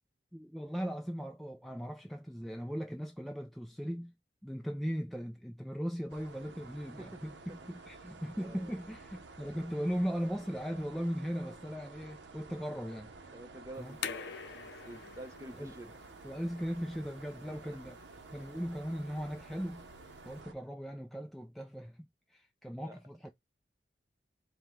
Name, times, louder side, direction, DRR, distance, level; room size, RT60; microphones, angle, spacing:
voice 1, 0.3-4.1 4.4-13.1 13.8-14.0 15.5-15.7 16.2-18.0 18.3-19.9 20.2-23.3, equal, ahead, 0.3 m, -38 dB
sound 1, 6.1-20.5, right 3 dB, 80° right, 0.7 m, -52 dB
voice 2, 8.4-8.7 13.3-15.9 17.5-17.8 22.8-23.0, right 1 dB, 15° right, 0.7 m, -49 dB
sound 2, 13.7-20.4, left 7 dB, 70° left, 0.5 m, -47 dB
4.9 x 2.2 x 3.5 m
head